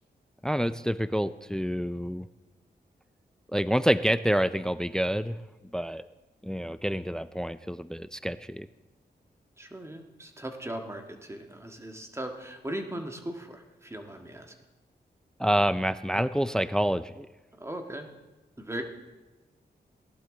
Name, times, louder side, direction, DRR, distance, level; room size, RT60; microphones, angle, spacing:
voice 1, 0.4-2.3 3.5-5.4 5.7-6.0 6.4-8.7 15.4-17.3, equal, 5° left, 14 dB, 0.4 m, -27 dB
voice 2, 9.6-14.5 17.6-18.1 18.6-18.8, right 1 dB, 15° right, 4 dB, 1.7 m, -38 dB
17.5 x 11.5 x 3.9 m, 1.2 s
cardioid pair, 80°, 17 cm